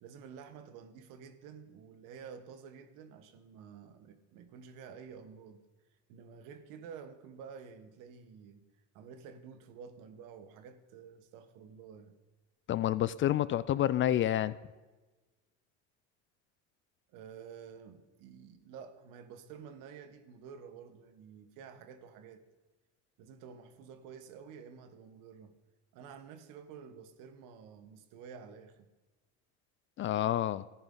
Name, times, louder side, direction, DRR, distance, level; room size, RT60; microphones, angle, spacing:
voice 1, 0.0-5.6 6.1-8.6 8.9-12.1 17.1-22.4 23.2-25.5 25.9-28.9, right 6 dB, 70° right, 1.2 m, -50 dB
voice 2, 12.7-14.6 30.0-30.6, left 12 dB, 35° left, 0.4 m, -29 dB
13.5 x 10.5 x 3.8 m
supercardioid pair, 90°, 34 cm